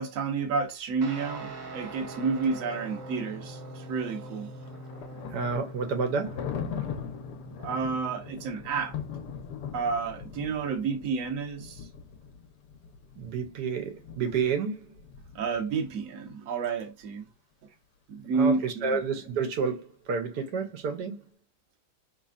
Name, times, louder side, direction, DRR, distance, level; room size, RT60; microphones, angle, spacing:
voice 1, 0.0-4.5 7.6-9.0 9.7-11.9 15.3-17.3 18.1-19.0, right 5 dB, 60° right, 1.2 m, -30 dB
Guitar, 1.0-9.9, right 1 dB, 40° right, 0.7 m, -43 dB
Thunder, 4.2-16.0, left 7 dB, 85° left, 1.3 m, -41 dB
voice 2, 5.3-6.5 13.2-14.9 18.3-21.3, right 5 dB, 85° right, 1.4 m, -30 dB
4.2 x 3.4 x 2.4 m
omnidirectional pair, 1.7 m